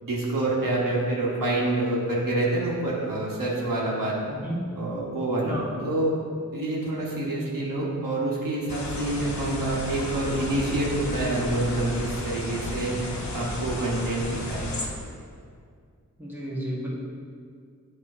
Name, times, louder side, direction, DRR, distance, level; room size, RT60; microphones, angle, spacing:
voice 1, 0.0-4.2 4.8-5.5 5.8-6.1 6.5-14.7, right 2 dB, 75° right, -4 dB, 1.2 m, -27 dB
voice 2, 4.3-4.6 5.4-5.7 16.2-16.9, equal, 5° right, -6 dB, 1.5 m, -32 dB
sound 1, 8.7-14.9, left 2 dB, 55° left, 0.9 m, -33 dB
8.2 x 3.0 x 4.9 m, 2.2 s
wide cardioid pair, 70°, 33 cm